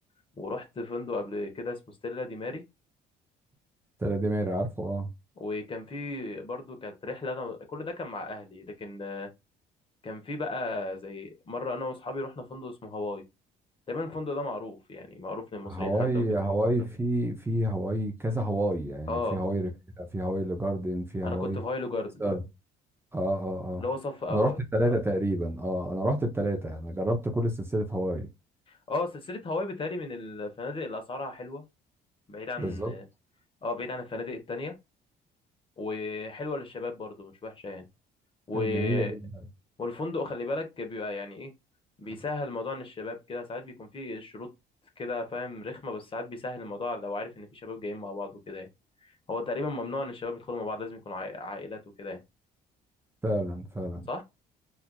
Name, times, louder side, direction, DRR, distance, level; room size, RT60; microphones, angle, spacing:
voice 1, 0.4-2.6 5.4-9.3 10.0-13.2 13.9-16.2 19.1-19.4 21.2-22.2 23.8-24.6 28.7-31.6 32.3-33.0 33.6-34.7 35.8-37.8 38.5-39.1 39.8-41.5 42.0-44.5 45.0-48.7 49.0-52.2 54.1-54.2, left 3 dB, 30° left, 1.0 m, -35 dB
voice 2, 4.0-5.1 15.7-19.7 20.0-21.6 22.2-22.4 23.1-23.8 24.3-28.3 32.6-33.0 38.5-39.2 53.2-54.2, right 1 dB, 15° right, 0.6 m, -29 dB
4.3 x 2.5 x 2.2 m
cardioid pair, 110°, 17 cm